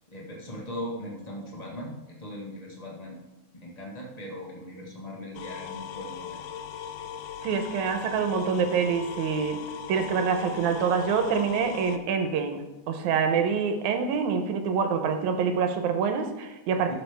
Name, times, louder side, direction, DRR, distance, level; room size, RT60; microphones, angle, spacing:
voice 1, 0.1-3.2 3.5-6.4 16.9-17.0, equal, 20° left, -2 dB, 1.2 m, -39 dB
sound 1, 5.3-12.0, left 9 dB, 80° left, 1.3 m, -39 dB
voice 2, 7.4-9.6 9.9-16.9, right 6 dB, 80° right, 6 dB, 2.3 m, -26 dB
11.5 x 7.4 x 3.5 m, 1.0 s
omnidirectional pair, 3.4 m